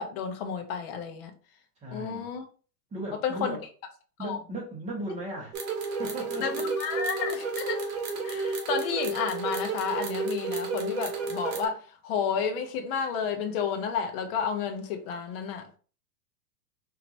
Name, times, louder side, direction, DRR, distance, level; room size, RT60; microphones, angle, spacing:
voice 1, 0.0-1.3 1.9-2.4 3.2-3.6 4.2-4.4 6.4-7.9 8.2-15.8, left 6 dB, 35° left, 0.9 m, -31 dB
voice 2, 1.8-2.3 2.9-3.6 4.2-5.7 6.0-6.7, right 1 dB, 15° right, 1.4 m, -36 dB
sound 1, 5.5-11.7, right 3 dB, 55° right, 1.4 m, -31 dB
4.4 x 2.9 x 2.7 m
hypercardioid pair, 140°, 49 cm